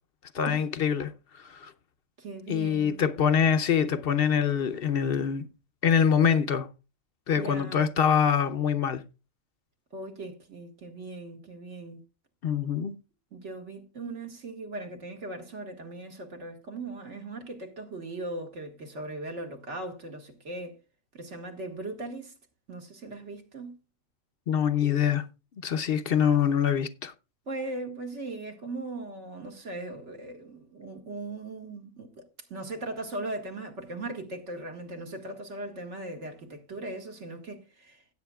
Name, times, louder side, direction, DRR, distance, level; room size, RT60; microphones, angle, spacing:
voice 1, 0.3-1.7 2.5-5.5 5.8-6.7 7.3-9.0 12.4-12.9 24.5-25.2 25.6-27.1, left 7 dB, 55° left, 0.8 m, -25 dB
voice 2, 2.2-3.0 7.4-7.9 9.9-12.0 13.3-20.8 21.1-22.3 22.7-23.8 27.5-32.3 32.5-38.0, right 2 dB, 65° right, 1.9 m, -39 dB
16.5 x 8.3 x 2.3 m
omnidirectional pair, 1.4 m